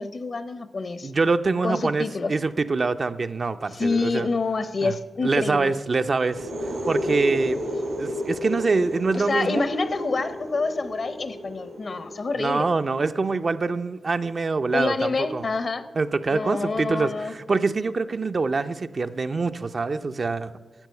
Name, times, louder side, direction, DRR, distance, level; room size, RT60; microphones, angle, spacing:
voice 1, 0.0-1.1 1.6-2.3 3.7-5.7 9.1-12.7 14.7-15.8 16.3-17.3, left 3 dB, 60° left, 12 dB, 0.8 m, -27 dB
voice 2, 1.0-4.3 4.8-4.9 5.2-6.5 6.9-7.6 8.0-9.7 12.4-15.5 16.0-20.5, right 3 dB, 55° right, 9 dB, 0.5 m, -25 dB
sound 1, 6.2-13.7, left 1 dB, 85° right, 2.8 m, -32 dB
12.0 x 7.6 x 6.6 m, 1.4 s
cardioid pair, 50°, 0 cm